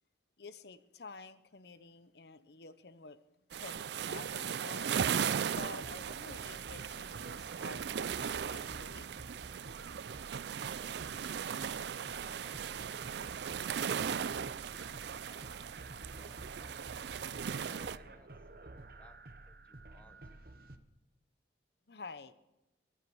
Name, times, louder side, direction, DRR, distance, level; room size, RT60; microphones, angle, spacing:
voice 1, 0.4-3.2 3.5-5.0 5.5-9.1 21.9-22.3, left 3 dB, 60° left, 14 dB, 0.8 m, -50 dB
sound 1, 3.5-18.0, right 7 dB, 70° right, 0.4 m, -37 dB
sound 2, 5.8-20.8, right 2 dB, 50° right, 0.9 m, -51 dB
voice 2, 10.8-11.8 16.2-17.1 17.7-18.3 18.6-19.1 19.5-20.6, equal, 5° left, 8 dB, 1.1 m, -64 dB
22.0 x 7.5 x 7.0 m, 0.96 s
head